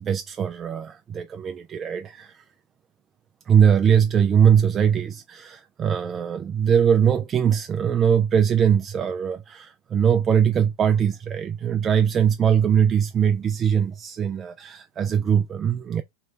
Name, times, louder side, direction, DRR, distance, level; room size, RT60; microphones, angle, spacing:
voice 1, 0.0-2.4 3.5-16.0, right 8 dB, 25° right, 0.3 m, -21 dB
3.1 x 3.1 x 3.7 m
figure-of-eight pair, 90°, 0 cm